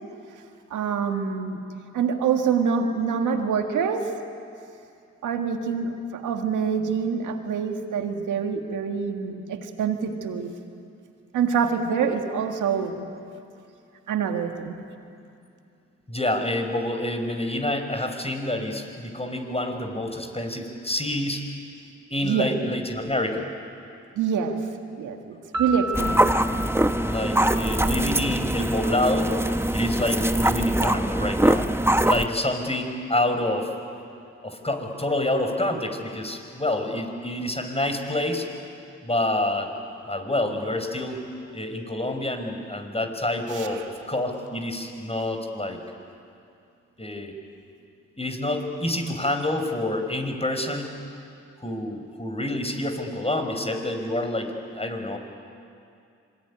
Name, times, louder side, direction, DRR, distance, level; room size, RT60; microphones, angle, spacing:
voice 1, 0.7-1.6 1.9-4.1 5.2-10.5 11.3-13.1 14.1-14.8 22.2-22.5 24.2-24.6 25.0-26.3 43.5-43.9, right 6 dB, 90° right, 4 dB, 1.9 m, -26 dB
voice 2, 16.1-21.5 22.1-23.5 27.0-29.3 29.7-31.7 32.0-33.7 34.4-38.5 39.0-39.7 40.1-41.2 41.5-45.8 47.0-47.3 48.2-51.0 51.6-55.2, left 1 dB, 20° left, 5 dB, 5.4 m, -27 dB
Piano, 25.5-28.3, equal, 65° right, 3.0 m, -32 dB
sound 1, 25.9-32.3, right 1 dB, 10° right, 1.2 m, -23 dB
26.0 x 22.0 x 9.9 m, 2.5 s
supercardioid pair, 40°, 30 cm